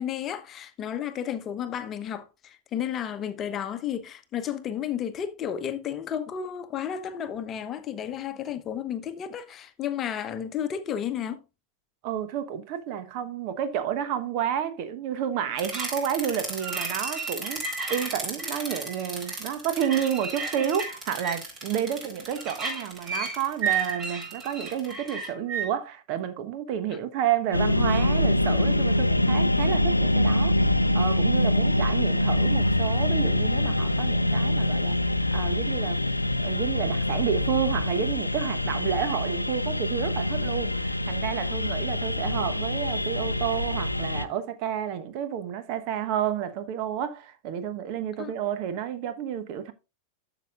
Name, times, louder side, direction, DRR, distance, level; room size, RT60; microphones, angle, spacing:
voice 1, 0.0-11.4 48.2-48.4, left 9 dB, 30° left, 1.0 m, -32 dB
voice 2, 12.0-30.6 30.9-36.0 36.4-49.7, right 9 dB, 45° right, 1.1 m, -30 dB
sound 1, 15.6-25.7, right 4 dB, 25° right, 4.5 m, -33 dB
sound 2, 27.5-44.3, left 1 dB, 85° left, 0.5 m, -25 dB
12.0 x 6.9 x 2.4 m
figure-of-eight pair, 90°, 0 cm